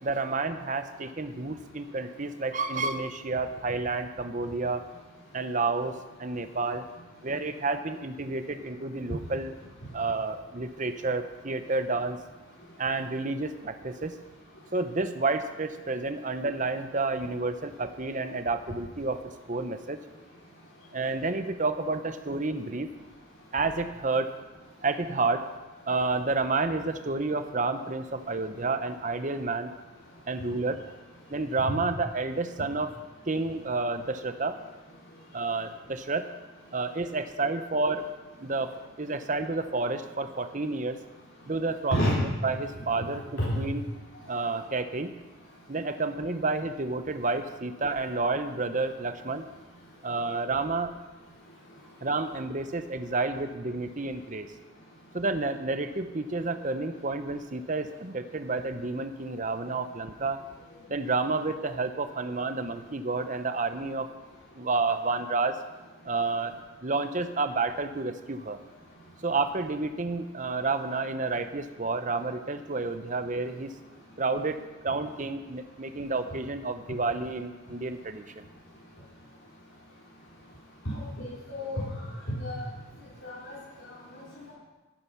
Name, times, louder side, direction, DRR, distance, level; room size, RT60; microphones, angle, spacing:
voice 1, 0.0-4.8 5.3-6.9 7.2-9.5 9.9-12.2 12.8-14.2 14.7-19.2 19.5-20.0 20.9-22.9 23.5-24.3 24.8-25.5 25.9-29.7 30.3-30.8 31.3-32.9 33.3-34.6 35.3-36.3 36.7-38.0 38.4-38.7 39.0-41.0 41.5-43.2 43.5-43.9 44.3-45.1 45.7-49.4 50.0-50.9 52.0-54.5 55.1-60.4 60.9-64.1 64.5-65.6 66.0-66.5 66.8-68.6 69.2-73.7 74.2-78.5, right 3 dB, 35° right, 9 dB, 0.8 m, -30 dB
voice 2, 80.9-81.8 82.4-82.7 83.2-83.5 84.1-84.2, equal, 60° left, -8 dB, 3.7 m, -29 dB
13.0 x 10.5 x 5.7 m, 1.2 s
head